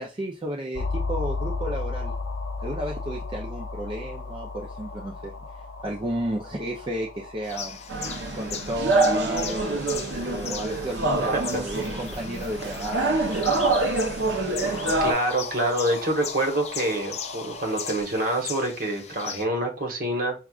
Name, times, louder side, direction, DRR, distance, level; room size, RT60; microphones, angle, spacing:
voice 1, 0.0-2.1 2.6-7.8 8.3-9.9 10.2-13.5, right 1 dB, 30° right, 1 dB, 0.5 m, -33 dB
sound 1, 0.7-17.9, left 3 dB, 90° left, 0.7 m, -36 dB
sound 2, 7.4-19.5, left 7 dB, 40° left, 0.5 m, -38 dB
sound 3, 7.9-15.1, right 2 dB, 85° right, 0.7 m, -26 dB
voice 2, 11.2-11.6 14.7-20.3, right 1 dB, 55° right, 2 dB, 1.1 m, -27 dB
6.0 x 2.3 x 2.4 m, 0.33 s
head